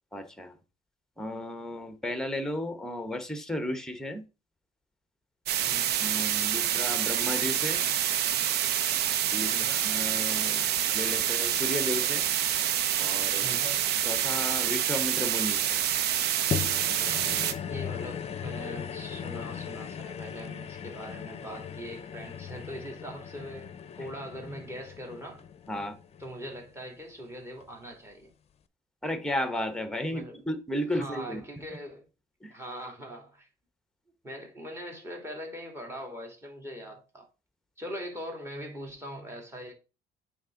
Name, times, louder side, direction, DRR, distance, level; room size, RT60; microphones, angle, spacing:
voice 1, 0.1-0.6 1.2-4.2 6.0-7.8 9.3-10.7 10.9-12.3 13.0-13.7 14.0-15.8 25.7-25.9 29.0-31.4 32.4-32.5, left 1 dB, 5° left, 1.1 m, -34 dB
No Signal (Original Interference), 5.5-17.5, right 10 dB, 75° right, 0.8 m, -27 dB
voice 2, 13.4-13.9 17.6-25.4 26.2-28.3 30.1-30.4 30.9-32.0 32.5-33.5 34.2-37.3 37.8-39.7, equal, 15° right, 2.6 m, -41 dB
sound 1, 16.5-27.0 27.6-27.7, left 8 dB, 40° left, 0.6 m, -38 dB
8.7 x 3.6 x 3.9 m
cardioid pair, 110°, 17 cm